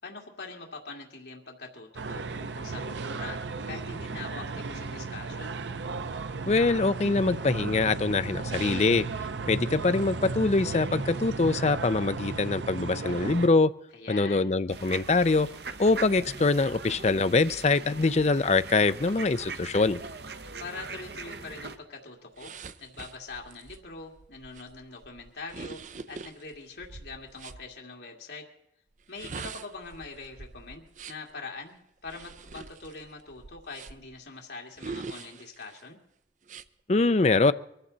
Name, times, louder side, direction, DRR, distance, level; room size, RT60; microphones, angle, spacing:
voice 1, 0.0-3.4 3.7-5.5 13.9-14.5 20.6-22.5 22.8-25.8 26.1-28.5 29.1-36.0, left 3 dB, 75° left, 0 dB, 2.3 m, -43 dB
sound 1, 2.0-13.5, right 4 dB, 85° right, 0.8 m, -35 dB
voice 2, 6.5-9.1 9.5-13.7 14.1-15.5 15.8-20.0 36.9-37.5, left 3 dB, 40° left, 13 dB, 0.5 m, -24 dB
sound 2, 14.7-21.8, right 4 dB, 65° right, 1.1 m, -41 dB
sound 3, 22.4-27.6 29.0-31.3 32.0-34.2 34.8-35.8 36.4-36.7, right 4 dB, 45° right, 0.6 m, -44 dB
23.0 x 15.0 x 4.0 m, 0.79 s
head